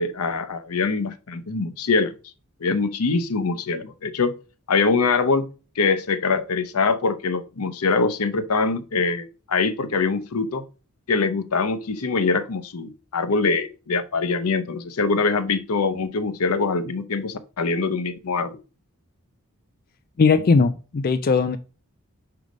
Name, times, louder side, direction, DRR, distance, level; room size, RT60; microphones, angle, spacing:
voice 1, 0.0-2.1 2.6-4.3 4.7-10.6 11.1-18.6, left 4 dB, 75° left, 0.7 m, -23 dB
voice 2, 20.2-21.6, left 4 dB, 40° left, 0.4 m, -19 dB
5.3 x 4.7 x 5.0 m
head